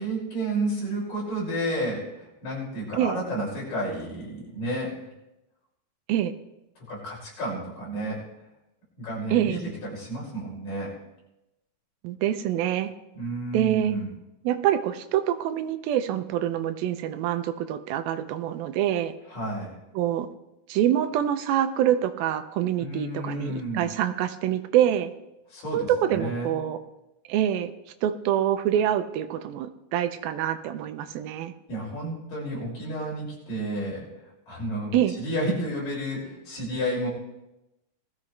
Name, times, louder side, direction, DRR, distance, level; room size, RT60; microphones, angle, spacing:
voice 1, 0.0-5.1 6.9-8.2 9.0-10.9 13.1-14.1 19.3-19.7 22.8-23.8 25.5-26.6 31.7-34.1 34.5-37.1, right 1 dB, 60° left, -5 dB, 7.5 m, -31 dB
voice 2, 12.0-12.9 13.5-13.9 14.4-19.1 20.0-20.3 20.7-25.1 25.7-26.8 27.3-27.7 28.0-31.5 34.9-35.2, right 11 dB, 80° right, 9 dB, 2.4 m, -25 dB
20.0 x 14.0 x 3.3 m, 0.93 s
omnidirectional pair, 4.4 m